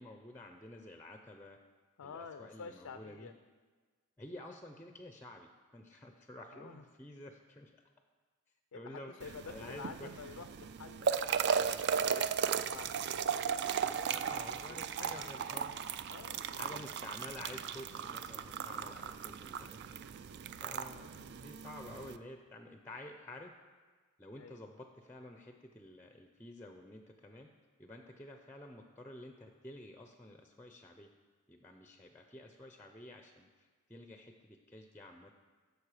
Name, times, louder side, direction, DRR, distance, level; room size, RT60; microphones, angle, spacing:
voice 1, 0.0-1.6 2.0-3.3 4.2-7.8 8.7-10.1 14.1-15.7 16.6-20.0 20.6-23.5 24.2-27.5 27.8-31.1 31.5-35.3, left 1 dB, 10° left, 5 dB, 0.5 m, -50 dB
voice 2, 2.0-3.3 6.5-6.8 8.7-11.7 12.0-14.3 14.7-15.3 16.1-16.8 20.8-21.3 24.4-24.6, left 5 dB, 75° left, 8 dB, 0.4 m, -50 dB
sound 1, 9.2-22.2, right 7 dB, 50° right, 0.3 m, -36 dB
12.0 x 6.6 x 4.9 m, 1.4 s
head